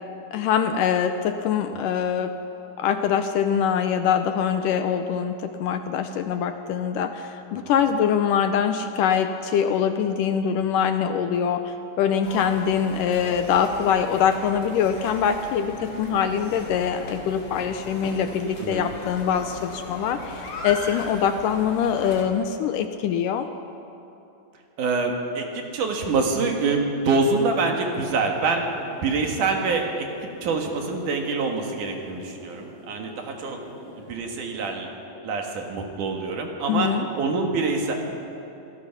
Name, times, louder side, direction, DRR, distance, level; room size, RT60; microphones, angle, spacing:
voice 1, 0.3-2.4 2.8-23.5 36.7-37.0, left 8 dB, 75° left, 8 dB, 2.1 m, -23 dB
sound 1, 12.2-22.2, left 2 dB, 40° left, 2.6 m, -38 dB
voice 2, 24.8-28.6 29.0-30.1 30.4-33.6 34.0-34.9 35.2-36.9 37.2-37.9, right 4 dB, 60° right, 2 dB, 3.1 m, -25 dB
sound 2, 28.3-34.1, equal, 30° right, 5.4 m, -45 dB
25.5 x 17.5 x 6.0 m, 2.8 s
omnidirectional pair, 4.2 m